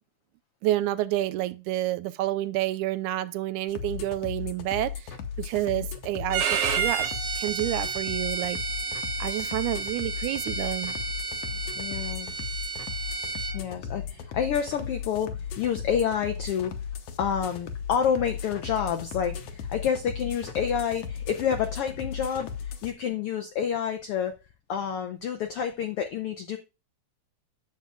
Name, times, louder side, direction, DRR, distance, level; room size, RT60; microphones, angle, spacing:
voice 1, 0.6-7.1 7.4-8.6 9.2-11.0, right 14 dB, 80° right, 2.0 m, -29 dB
sound 1, 3.7-22.9, left 7 dB, 65° left, 1.7 m, -36 dB
Bowed string instrument, 6.3-13.6, right 5 dB, 55° right, 2.2 m, -31 dB
voice 2, 11.8-12.3 13.5-16.7 17.2-24.3 24.7-26.6, left 8 dB, 90° left, 1.3 m, -29 dB
9.8 x 7.5 x 2.3 m
omnidirectional pair, 3.5 m